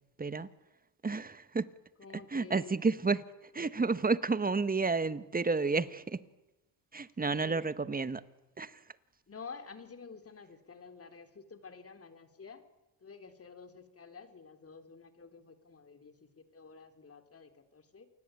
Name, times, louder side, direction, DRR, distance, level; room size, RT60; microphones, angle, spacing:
voice 1, 0.2-0.5 1.0-1.7 2.3-3.2 3.5-6.2 6.9-8.2 8.6-8.8, right 4 dB, 20° right, 1.4 m, -31 dB
voice 2, 2.0-2.8 7.2-7.7 9.3-12.6 13.0-18.1, left 5 dB, 30° left, 3.6 m, -50 dB
28.0 x 19.5 x 9.1 m
supercardioid pair, 85°, 46 cm